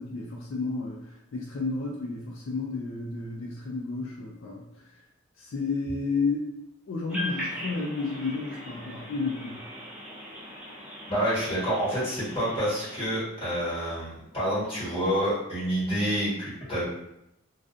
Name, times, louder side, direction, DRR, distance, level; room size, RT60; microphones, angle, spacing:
voice 1, 0.0-4.8 5.4-6.5 6.9-9.6, left 3 dB, 70° left, -2 dB, 0.4 m, -32 dB
sound 1, 7.1-13.1, left 1 dB, 5° right, 0.5 m, -39 dB
voice 2, 11.1-16.8, equal, 25° left, -10 dB, 1.3 m, -28 dB
2.4 x 2.3 x 2.5 m, 0.83 s
head